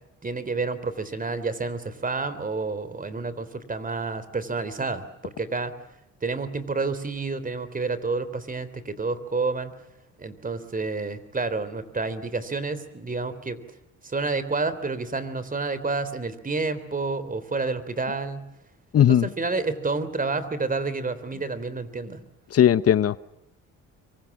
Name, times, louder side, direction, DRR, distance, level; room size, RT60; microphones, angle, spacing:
voice 1, 0.2-5.7 6.2-9.7 10.2-13.6 14.0-18.4 18.9-22.2, right 3 dB, 30° right, 14 dB, 3.5 m, -29 dB
voice 2, 18.9-19.3 22.5-23.2, left 10 dB, 50° left, 16 dB, 0.9 m, -18 dB
26.5 x 24.0 x 7.3 m, 0.89 s
cardioid pair, 90°, 30 cm